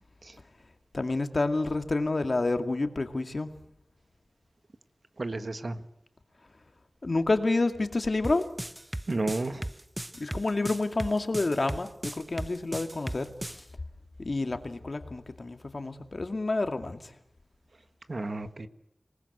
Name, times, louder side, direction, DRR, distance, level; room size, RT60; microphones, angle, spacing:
voice 1, 0.9-3.5 7.0-8.5 10.1-13.6 14.2-17.1, left 2 dB, 55° left, 7 dB, 2.3 m, -29 dB
voice 2, 5.2-5.8 9.1-9.7 18.1-18.7, right 2 dB, 55° right, 10 dB, 1.6 m, -32 dB
sound 1, 8.2-13.6, right 1 dB, 15° right, 0.8 m, -36 dB
27.0 x 19.0 x 8.0 m, 0.82 s
wide cardioid pair, 70°, 0 cm